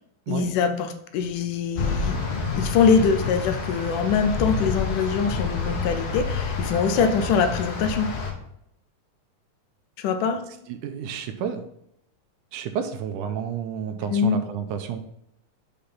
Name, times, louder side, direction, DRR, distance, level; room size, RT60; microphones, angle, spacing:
voice 1, 0.3-2.2 2.6-8.1 10.0-10.4 14.1-14.4, left 6 dB, 80° left, 8 dB, 2.3 m, -23 dB
sound 1, 1.8-8.3, left 4 dB, 55° left, 2.0 m, -28 dB
voice 2, 10.7-11.6 12.5-15.0, right 8 dB, 80° right, 7 dB, 2.0 m, -30 dB
5.7 x 5.2 x 5.6 m, 0.77 s
omnidirectional pair, 3.8 m